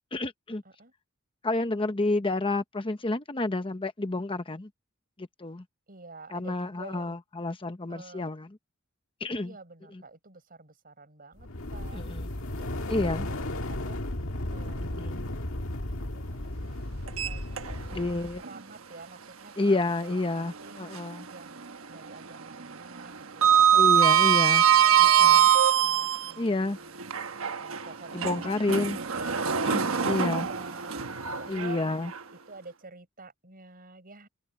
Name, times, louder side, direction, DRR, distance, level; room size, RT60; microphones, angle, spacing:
voice 1, 0.1-0.6 1.4-4.7 5.2-5.6 6.3-8.5 9.2-9.5 11.9-12.3 12.9-13.3 15.0-15.2 17.9-18.4 19.6-21.3 23.8-24.6 25.0-25.5 26.4-26.8 28.1-29.0 29.7-30.5 31.5-32.1, left 2 dB, 25° left, 0.9 m, -29 dB
voice 2, 5.9-7.2 7.9-8.3 9.3-12.1 12.5-14.0 14.5-15.2 16.0-16.7 17.0-18.1 18.4-20.8 21.3-25.4 25.8-27.0 27.6-29.4 29.8-31.8 32.3-34.3, right 3 dB, 45° right, 7.3 m, -49 dB
sound 1, 11.4-18.4, left 1 dB, 75° left, 1.9 m, -34 dB
Sliding door, 17.1-18.1 18.4-18.6 20.3-21.3 21.6-22.0 22.2-26.3 27.0-32.2, right 9 dB, 80° right, 1.2 m, -23 dB
head